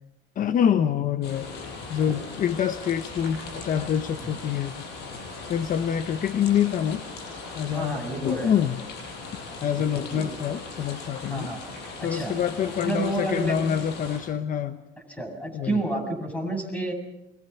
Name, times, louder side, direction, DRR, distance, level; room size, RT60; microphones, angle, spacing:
voice 1, 0.4-1.5 1.9-4.7 5.5-7.0 7.5-8.8 9.6-11.5 12.0-14.8 15.5-15.8, left 9 dB, 50° left, 10 dB, 1.0 m, -26 dB
sound 1, 1.2-14.2, left 3 dB, 85° left, 6.9 m, -39 dB
voice 2, 7.7-8.5 9.8-10.3 11.3-11.6 12.0-12.4 12.8-13.7 15.1-16.9, right 2 dB, 10° left, 4 dB, 7.5 m, -30 dB
29.0 x 24.5 x 5.8 m, 0.91 s
cardioid pair, 110°, 17 cm